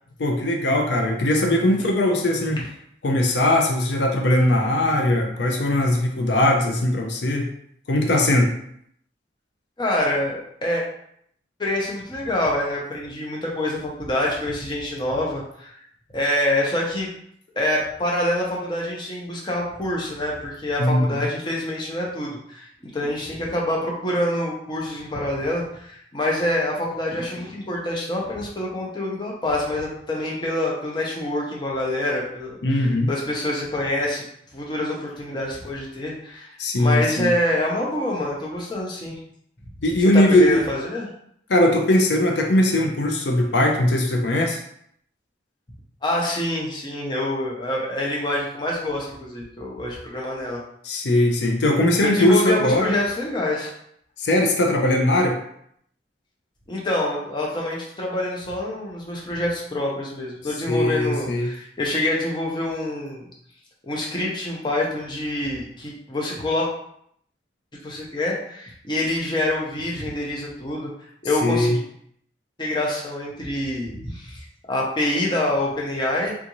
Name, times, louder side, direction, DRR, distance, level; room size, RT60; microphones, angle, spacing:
voice 1, 0.2-2.6 3.0-7.5 7.9-8.5 20.8-21.3 32.6-33.1 36.6-37.3 39.8-40.6 41.5-44.6 50.8-52.9 54.2-55.4 60.7-61.5 71.4-71.8, left 1 dB, 75° left, 2 dB, 0.5 m, -20 dB
voice 2, 9.8-10.8 11.6-15.7 16.1-17.1 17.6-22.7 22.9-34.2 34.5-39.2 40.1-41.1 46.0-50.6 52.0-53.7 56.7-63.3 63.8-66.7 67.8-70.9 71.2-71.8 72.6-76.4, left 1 dB, 25° left, -3 dB, 0.7 m, -26 dB
3.6 x 2.5 x 2.9 m, 0.70 s
head